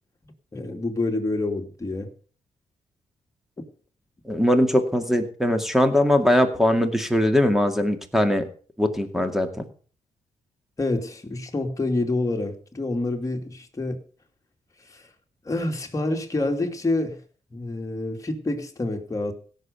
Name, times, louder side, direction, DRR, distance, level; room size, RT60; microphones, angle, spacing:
voice 1, 0.5-2.1 10.8-14.0 14.9-15.1 15.4-17.2 17.5-19.3, left 2 dB, 25° left, 3 dB, 2.7 m, -27 dB
voice 2, 4.3-8.4 8.8-9.7, left 1 dB, 5° right, 7 dB, 2.1 m, -21 dB
16.5 x 6.7 x 6.7 m, 0.41 s
cardioid pair, 105°, 13 cm